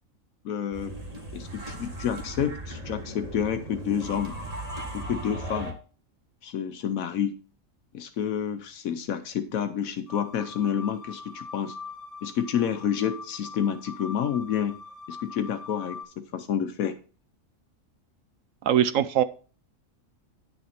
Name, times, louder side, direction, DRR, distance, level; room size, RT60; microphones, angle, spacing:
voice 1, 0.4-0.9 1.3-4.3 4.9-5.7 6.4-7.4 7.9-11.8 12.2-14.7 15.1-16.9, left 8 dB, 85° left, 8 dB, 1.2 m, -29 dB
sound 1, 0.7-5.7, right 1 dB, 30° right, 1.9 m, -37 dB
sound 2, 10.1-16.0, left 4 dB, 60° left, 1.8 m, -42 dB
voice 2, 18.6-19.2, right 10 dB, 75° right, 13 dB, 1.0 m, -21 dB
9.9 x 6.9 x 4.3 m, 0.37 s
omnidirectional pair, 1.4 m